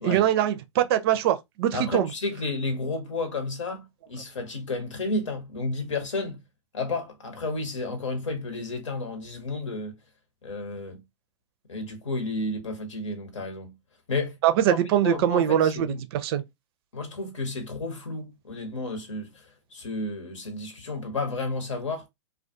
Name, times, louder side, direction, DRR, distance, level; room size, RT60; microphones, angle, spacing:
voice 1, 0.0-2.1 14.4-16.4, right 11 dB, 55° right, 0.4 m, -23 dB
voice 2, 1.7-6.4 6.7-9.9 10.4-11.0 11.7-13.7 14.1-14.4 15.0-16.0 16.9-22.1, left 2 dB, 80° left, 1.0 m, -32 dB
2.3 x 2.2 x 2.5 m
hypercardioid pair, 105°, 16 cm